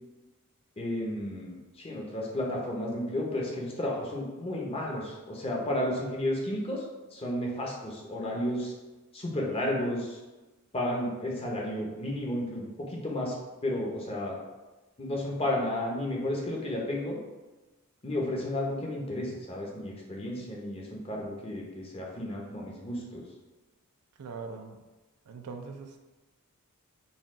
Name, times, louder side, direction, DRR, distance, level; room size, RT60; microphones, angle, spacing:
voice 1, 0.8-6.8 7.1-8.7 9.1-10.2 10.7-13.4 13.6-14.3 15.0-17.2 18.0-23.3, left 1 dB, 25° left, -2 dB, 0.7 m, -32 dB
voice 2, 24.2-24.8 25.3-26.0, right 4 dB, 85° right, 5 dB, 0.5 m, -41 dB
4.1 x 2.3 x 3.6 m, 1.1 s
head